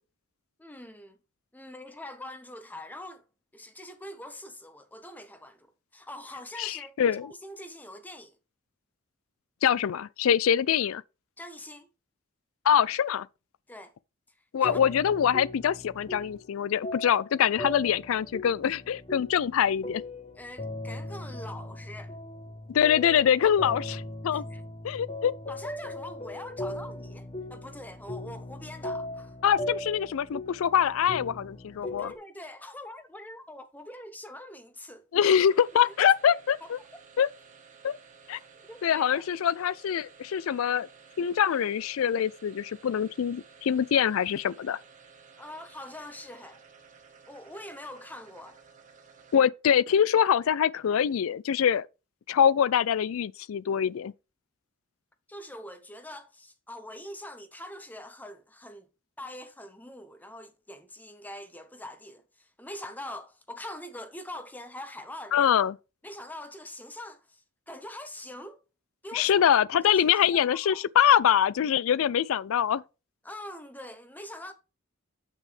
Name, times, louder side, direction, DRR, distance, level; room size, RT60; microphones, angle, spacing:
voice 1, 0.6-1.2 1.5-3.2 3.5-8.4 11.4-11.9 13.7-13.9 14.6-14.8 20.3-22.1 24.3-24.6 25.5-29.3 32.0-35.0 35.8-36.0 36.3-36.7 38.7-39.2 45.4-46.6 47.3-48.6 55.3-58.9 59.2-65.5 66.0-68.6 69.0-69.5 69.8-70.8 73.2-74.5, left 1 dB, 10° left, 0.6 m, -44 dB
voice 2, 6.6-7.3 9.6-11.0 12.7-13.3 14.5-20.0 22.7-24.4 24.8-25.3 29.4-32.1 35.1-36.8 37.2-37.3 37.8-38.0 38.3-38.4 38.8-40.9 41.2-44.8 49.3-51.9 52.3-54.1 65.3-65.8 69.1-72.8, left 8 dB, 70° left, 0.4 m, -24 dB
sound 1, 14.6-16.6 16.8-32.2, left 1 dB, 30° left, 0.9 m, -39 dB
sound 2, 35.3-49.6, right 5 dB, 35° right, 1.4 m, -54 dB
7.6 x 6.2 x 3.3 m
head